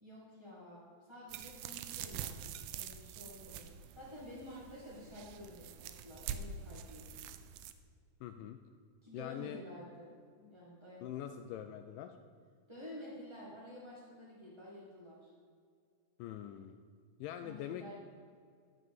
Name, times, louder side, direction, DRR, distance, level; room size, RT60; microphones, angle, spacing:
voice 1, 0.0-7.1 9.0-11.0 12.7-15.3 17.4-18.0, left 1 dB, 15° right, -7 dB, 0.8 m, -51 dB
sound 1, 1.3-7.7, right 8 dB, 80° right, 2.2 m, -45 dB
voice 2, 8.2-8.6 9.1-9.6 11.0-12.2 16.2-16.8 17.2-18.0, left 10 dB, 80° left, 8 dB, 2.0 m, -43 dB
12.0 x 5.0 x 8.0 m, 2.1 s
omnidirectional pair, 4.2 m